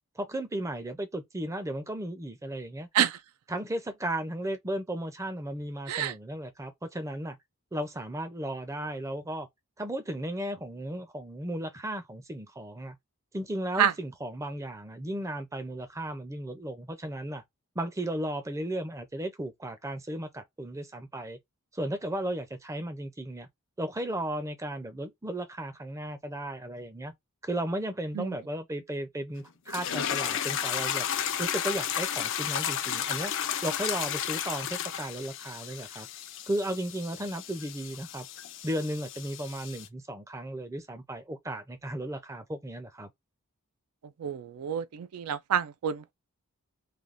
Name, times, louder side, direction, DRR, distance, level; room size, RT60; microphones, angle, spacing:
voice 1, 0.2-2.9 3.5-7.4 7.7-9.5 9.8-13.0 13.3-17.4 17.8-21.4 21.7-23.5 23.8-27.1 27.4-31.1 31.4-33.3 33.6-36.1 36.5-38.3 38.6-43.1, right 1 dB, 15° right, 0.5 m, -35 dB
sound 1, 29.7-39.9, left 9 dB, 55° left, 0.5 m, -33 dB
voice 2, 44.2-46.1, right 9 dB, 85° right, 0.4 m, -28 dB
3.3 x 2.2 x 2.5 m
head